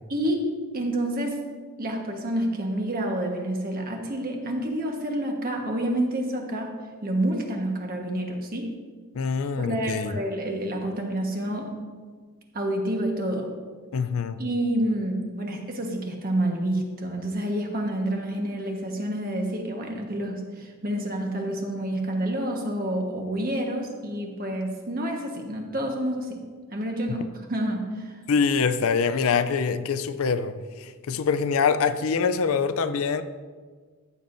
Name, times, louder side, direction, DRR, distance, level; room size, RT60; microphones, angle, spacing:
voice 1, 0.1-0.5 0.7-1.4 1.8-6.7 7.0-8.7 9.6-11.7 12.5-13.5 14.4-26.4 26.7-28.2, right 1 dB, 40° right, 1.3 m, -28 dB
voice 2, 9.1-10.2 13.9-14.4 28.3-33.2, left 5 dB, 65° left, 0.4 m, -24 dB
14.0 x 7.2 x 2.6 m
head